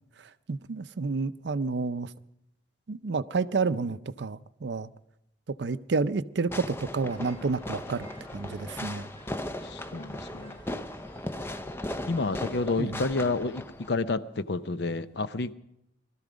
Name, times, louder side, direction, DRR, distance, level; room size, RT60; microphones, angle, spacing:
voice 1, 0.5-2.1 2.9-4.9 5.6-9.1 12.8-13.0, right 4 dB, 60° right, 0.5 m, -30 dB
Fireworks, 6.5-13.9, left 1 dB, 10° left, 0.5 m, -37 dB
sound 1, 7.1-12.8, equal, 25° left, 2.5 m, -51 dB
voice 2, 9.6-10.6 12.1-15.5, left 3 dB, 60° left, 0.6 m, -30 dB
20.5 x 13.0 x 5.1 m
head